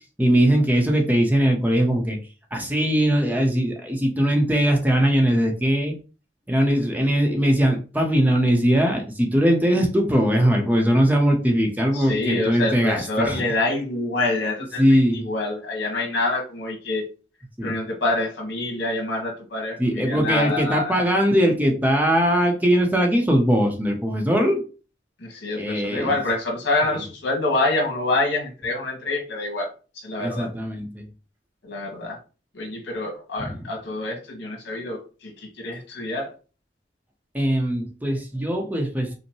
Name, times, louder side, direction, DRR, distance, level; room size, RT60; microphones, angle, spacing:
voice 1, 0.2-2.2 2.5-6.0 6.5-13.4 14.8-15.3 17.6-17.7 19.8-24.6 25.6-26.1 30.2-31.0 33.4-33.6 37.3-39.1, equal, 10° right, 2 dB, 0.7 m, -20 dB
voice 2, 11.9-17.0 17.6-21.0 25.2-29.7 29.9-30.5 31.6-32.2 32.5-36.3, left 2 dB, 90° left, 0 dB, 1.6 m, -26 dB
5.2 x 2.1 x 3.0 m, 0.34 s
head